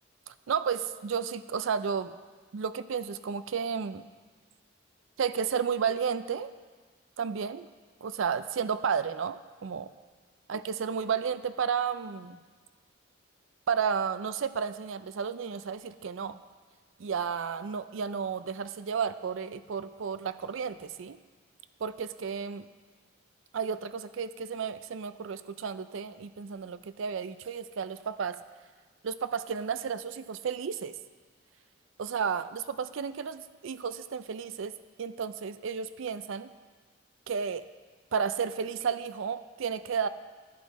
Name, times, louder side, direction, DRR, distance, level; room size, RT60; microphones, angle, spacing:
voice 1, 0.3-2.1 2.5-4.0 5.2-6.5 7.2-7.7 8.0-9.9 10.5-12.4 13.7-16.4 17.0-21.2 21.8-22.7 23.5-28.4 29.0-31.0 32.0-36.5 37.3-37.7 38.1-40.1, right 6 dB, 70° right, 13 dB, 0.4 m, -32 dB
11.5 x 9.5 x 4.1 m, 1.4 s
head